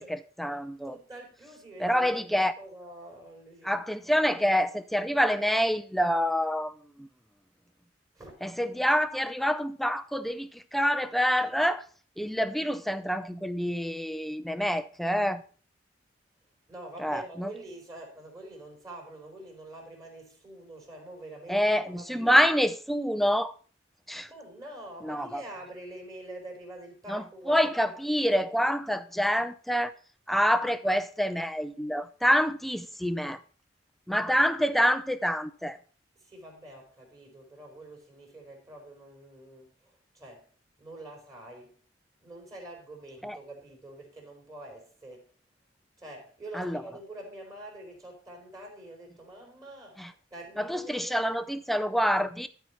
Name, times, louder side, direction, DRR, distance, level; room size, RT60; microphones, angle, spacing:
voice 1, 0.0-1.0 1.8-2.5 3.6-7.1 8.4-11.8 12.2-15.4 17.0-17.5 21.5-23.5 24.1-24.3 25.0-25.4 27.1-29.9 30.3-33.4 34.1-35.8 43.2-43.4 46.5-46.8 50.0-50.1 50.6-52.5, equal, ahead, 0.5 m, -27 dB
voice 2, 0.8-2.2 2.6-3.7 8.1-8.4 16.7-22.5 24.3-27.7 34.3-34.5 36.2-40.5 40.8-41.8 42.2-45.3 46.0-51.4, right 1 dB, 20° right, 4.2 m, -46 dB
13.5 x 4.7 x 5.5 m
head